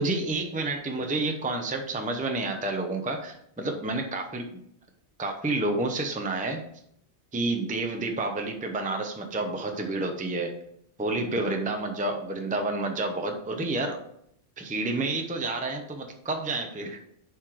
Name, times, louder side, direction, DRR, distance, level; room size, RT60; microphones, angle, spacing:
voice 1, 0.0-4.6 5.2-6.6 7.3-10.5 11.0-14.0 14.6-17.0, right 2 dB, 10° right, 4 dB, 0.7 m, -29 dB
7.4 x 4.7 x 4.8 m, 0.73 s
omnidirectional pair, 1.3 m